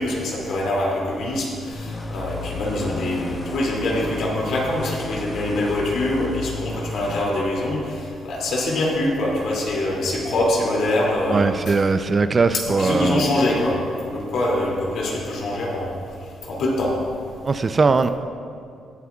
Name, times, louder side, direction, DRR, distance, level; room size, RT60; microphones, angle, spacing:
voice 1, 0.0-7.8 8.2-11.8 12.5-15.9 16.5-16.9, left 1 dB, 70° left, -3 dB, 2.5 m, -24 dB
sound 1, 1.7-7.2, left 3 dB, 25° left, 1.0 m, -33 dB
voice 2, 11.3-13.2 17.4-18.1, right 4 dB, 35° right, 10 dB, 0.4 m, -20 dB
18.5 x 8.1 x 2.4 m, 2.4 s
cardioid pair, 90°, 0 cm